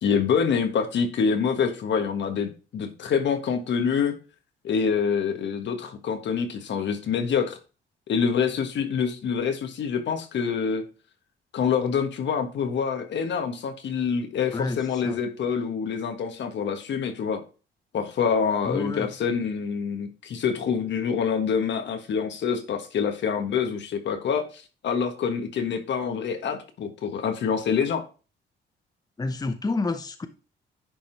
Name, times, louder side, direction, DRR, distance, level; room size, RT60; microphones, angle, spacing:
voice 1, 0.0-4.1 4.6-7.6 8.1-10.8 11.5-17.4 17.9-24.5 24.8-28.0, left 6 dB, 65° left, 1.4 m, -26 dB
voice 2, 14.5-15.2 18.7-19.1 29.2-30.3, left 3 dB, 20° left, 0.8 m, -29 dB
10.5 x 3.6 x 4.5 m
cardioid pair, 90°, 20 cm